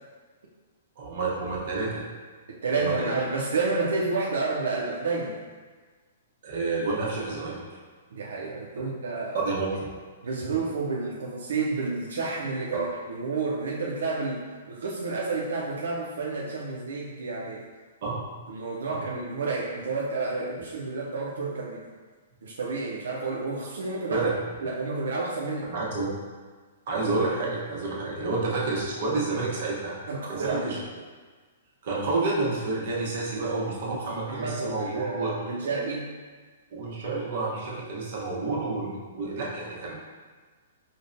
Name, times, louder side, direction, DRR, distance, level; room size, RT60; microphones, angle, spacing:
voice 1, 1.0-2.0 2.8-3.1 6.4-7.6 9.3-9.9 12.7-12.9 18.0-18.3 18.9-19.0 24.1-24.3 25.7-26.1 26.9-30.0 30.3-30.8 31.8-35.3 36.7-39.9, right 3 dB, 50° right, -4 dB, 0.9 m, -29 dB
voice 2, 2.5-5.4 8.1-9.4 9.7-9.8 10.2-17.6 18.5-21.8 22.4-24.2 24.6-25.7 30.1-30.8 33.9-36.1 37.5-37.6, right 3 dB, 85° right, -3 dB, 0.4 m, -30 dB
5.1 x 2.1 x 2.5 m, 1.4 s
hypercardioid pair, 165°, 0 cm